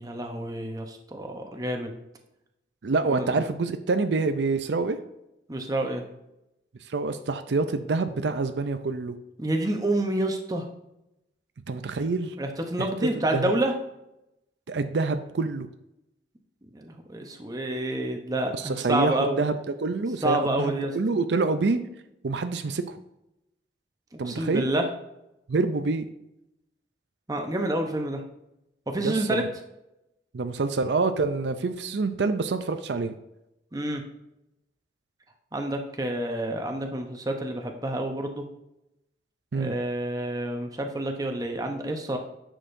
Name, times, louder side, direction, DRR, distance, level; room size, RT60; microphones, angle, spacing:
voice 1, 0.0-1.9 3.1-3.4 5.5-6.0 9.4-10.7 12.4-13.7 16.7-19.4 20.2-20.9 24.2-24.8 27.3-28.2 28.9-29.4 33.7-34.0 35.5-38.4 39.5-42.2, right 1 dB, 20° right, 3 dB, 0.9 m, -28 dB
voice 2, 2.8-5.0 6.9-9.2 11.7-12.4 12.8-12.9 13.3-13.5 14.7-15.7 18.5-21.8 22.2-23.0 24.2-24.7 25.5-26.1 29.0-29.5 30.3-33.1 39.5-39.7, right 3 dB, 80° right, 9 dB, 0.5 m, -26 dB
9.8 x 6.3 x 2.7 m, 0.88 s
head